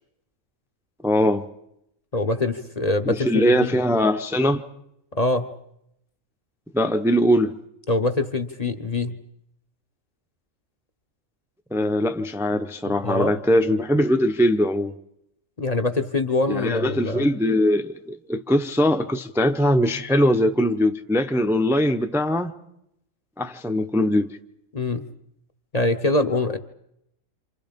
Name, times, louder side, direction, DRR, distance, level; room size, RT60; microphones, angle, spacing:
voice 1, 1.0-1.4 3.1-4.6 6.7-7.6 11.7-14.9 16.5-22.5 23.4-24.3, equal, ahead, 0.8 m, -21 dB
voice 2, 2.1-3.7 5.1-5.5 7.9-9.2 12.8-13.4 15.6-17.3 24.7-25.1 25.7-26.6, left 2 dB, 35° left, 1.1 m, -24 dB
28.5 x 27.0 x 5.3 m
omnidirectional pair, 1.3 m